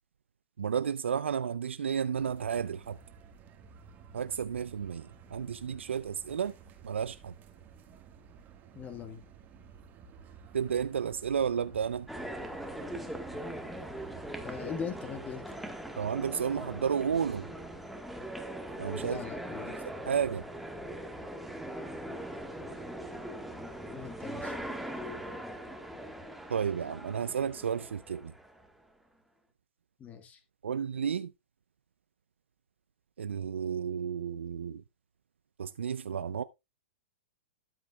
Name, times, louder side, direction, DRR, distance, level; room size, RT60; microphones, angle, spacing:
voice 1, 0.6-3.0 4.1-6.5 6.8-7.3 10.5-12.1 16.0-17.5 18.8-19.2 20.1-20.4 26.5-28.3 30.6-31.3 33.2-34.8 35.6-36.4, right 7 dB, 85° right, 0.4 m, -32 dB
sound 1, 2.1-15.2, right 6 dB, 30° right, 1.5 m, -54 dB
voice 2, 8.7-9.2 14.4-15.4 19.0-19.7 23.9-24.5 30.0-30.4, left 6 dB, 25° left, 1.5 m, -40 dB
sound 2, 12.1-28.7, right 1 dB, ahead, 1.3 m, -41 dB
12.5 x 8.4 x 2.3 m
hypercardioid pair, 120°, 6 cm